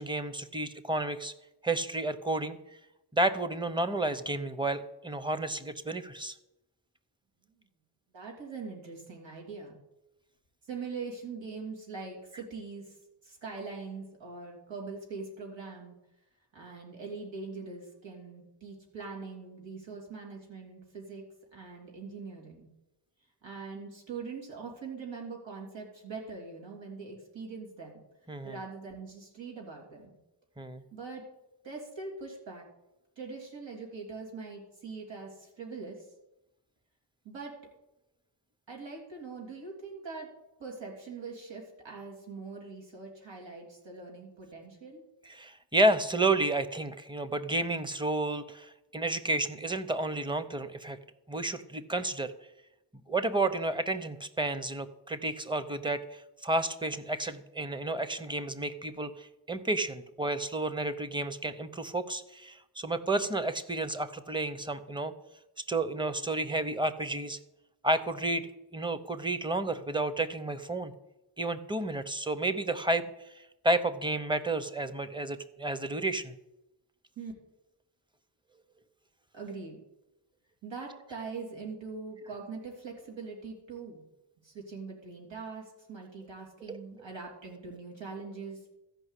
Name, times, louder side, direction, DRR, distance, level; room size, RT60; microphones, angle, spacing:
voice 1, 0.0-1.3 1.6-2.6 3.1-6.3 28.3-28.6 30.6-30.8 45.3-51.0 51.3-52.3 53.1-65.1 65.7-67.4 67.8-70.9 71.4-73.0 73.3-76.3 86.7-86.8, right 2 dB, 10° right, 11 dB, 0.7 m, -31 dB
voice 2, 8.1-9.8 10.7-13.0 13.2-16.0 16.5-21.2 21.5-22.7 23.4-28.0 28.4-30.2 30.9-31.2 31.6-32.7 33.2-36.1 37.3-37.6 38.7-40.3 40.6-45.0 77.2-77.3 79.3-79.8 80.6-84.0 84.4-88.7, right 4 dB, 90° right, -2 dB, 3.3 m, -42 dB
14.0 x 5.6 x 8.2 m, 0.93 s
wide cardioid pair, 140°, 44 cm